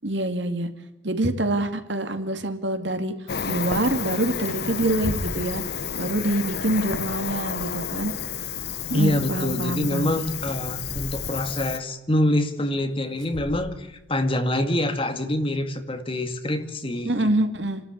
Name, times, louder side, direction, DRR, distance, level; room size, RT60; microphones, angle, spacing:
voice 1, 0.0-0.7 1.0-3.1 3.5-5.6 5.9-8.1 8.9-10.1 17.0-17.8, right 1 dB, 70° right, 8 dB, 2.4 m, -25 dB
Cricket, 3.3-11.8, left 7 dB, 55° left, 0.8 m, -31 dB
sound 1, 4.8-5.6 6.9-7.2 10.2-11.5 13.1-14.0, left 1 dB, 5° left, 6.4 m, -36 dB
voice 2, 8.9-17.3, left 1 dB, 30° left, 7 dB, 2.0 m, -25 dB
29.5 x 13.0 x 8.6 m, 0.95 s
head